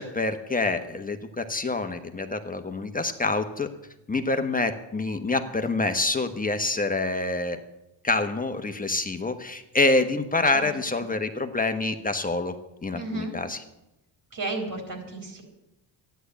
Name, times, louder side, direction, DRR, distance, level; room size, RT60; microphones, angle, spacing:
voice 1, 0.0-3.7 4.1-7.6 8.0-12.5 12.8-13.6, left 2 dB, 20° left, 7 dB, 1.3 m, -26 dB
voice 2, 10.5-11.0 12.9-13.3 14.3-15.4, right 2 dB, 45° right, 3 dB, 4.1 m, -33 dB
13.0 x 10.5 x 8.3 m, 0.92 s
cardioid pair, 90°, 45 cm